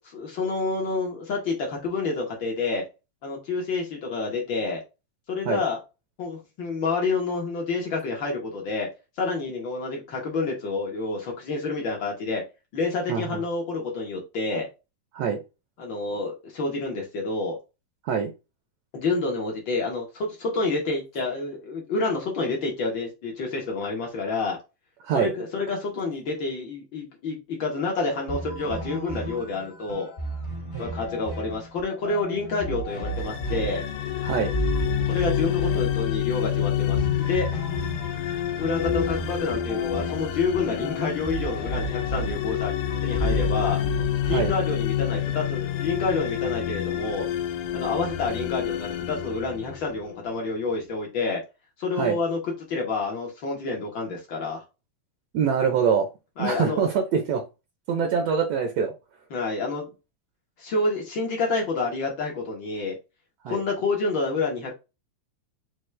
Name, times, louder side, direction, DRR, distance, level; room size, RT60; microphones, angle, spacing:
voice 1, 0.0-2.8 3.2-4.8 5.3-5.8 6.2-8.9 9.2-12.4 12.7-14.7 15.8-17.6 18.9-24.6 25.1-30.1 30.8-33.8 35.1-37.6 38.6-42.7 43.0-43.8 44.3-47.3 47.7-51.4 51.8-54.6 56.4-56.8 59.3-59.9 60.6-63.0 63.5-64.7, left 3 dB, 65° left, 1.1 m, -28 dB
voice 2, 13.1-13.4 15.1-15.4 18.0-18.3 25.0-25.3 30.7-30.8 34.2-34.5 44.3-44.5 52.0-52.2 55.3-56.1 56.4-57.4 57.9-58.9 63.4-63.6, right 6 dB, 75° right, 1.6 m, -24 dB
sound 1, 28.3-45.5, right 2 dB, 40° left, 0.9 m, -33 dB
sound 2, 33.1-50.2, left 11 dB, 80° left, 1.8 m, -28 dB
6.1 x 2.4 x 3.3 m
omnidirectional pair, 3.9 m